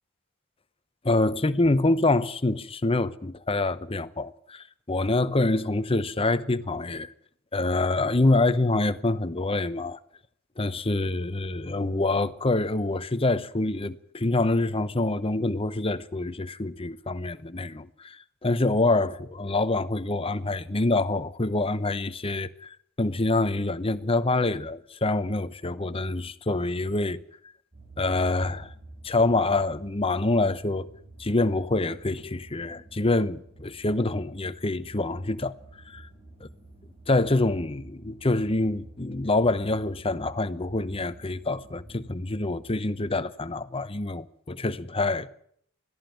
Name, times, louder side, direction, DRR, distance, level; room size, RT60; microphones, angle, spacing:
voice 1, 1.0-7.1 7.5-10.0 10.6-27.2 28.0-28.7 29.0-30.9 31.2-35.5 35.8-36.1 36.4-36.5 37.1-45.3, left 2 dB, 25° left, 0.9 m, -26 dB
sound 1, 27.7-42.8, right 2 dB, 35° right, 3.9 m, -49 dB
21.0 x 14.0 x 9.3 m
head